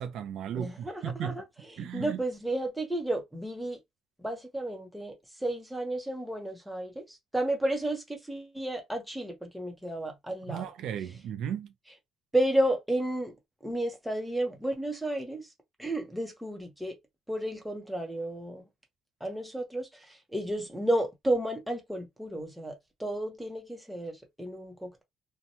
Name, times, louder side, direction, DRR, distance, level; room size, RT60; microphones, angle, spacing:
voice 1, 0.0-1.4 1.8-2.2 10.5-11.7, right 9 dB, 75° right, 0.4 m, -35 dB
voice 2, 0.6-1.4 1.7-3.8 4.2-5.1 5.4-10.7 12.3-13.3 13.6-15.5 15.8-16.9 17.3-18.6 19.2-25.0, right 1 dB, 5° right, 0.8 m, -32 dB
2.8 x 2.2 x 2.7 m
cardioid pair, 120°, 0 cm